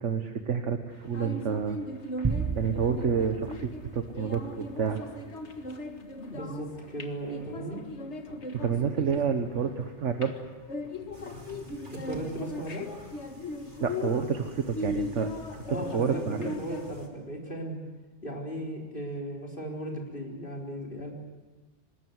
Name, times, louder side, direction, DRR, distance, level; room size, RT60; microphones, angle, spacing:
voice 1, 0.0-1.8 2.2-2.3 2.6-5.0 8.6-10.3 13.8-15.6 15.9-16.6, right 6 dB, 80° right, 6 dB, 1.5 m, -29 dB
sound 1, 0.9-16.9, left 2 dB, 70° left, 2.0 m, -39 dB
sound 2, 2.2-4.7, right 4 dB, 25° right, 0.6 m, -34 dB
voice 2, 6.3-7.8 11.9-12.9 15.7-17.8 18.2-21.1, right 1 dB, 50° left, -1 dB, 4.4 m, -36 dB
sound 3, 11.1-17.1, equal, 45° right, 3.2 m, -49 dB
25.5 x 20.5 x 8.0 m, 1.2 s
omnidirectional pair, 1.2 m